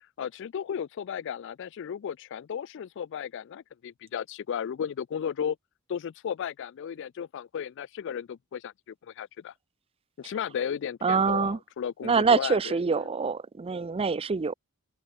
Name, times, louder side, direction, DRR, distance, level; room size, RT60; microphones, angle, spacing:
voice 1, 0.2-5.6 5.9-9.5 10.2-12.7 13.0-13.1, left 8 dB, 55° left, 0.3 m, -34 dB
voice 2, 11.0-11.6 12.0-14.5, right 5 dB, 25° right, 0.4 m, -25 dB
head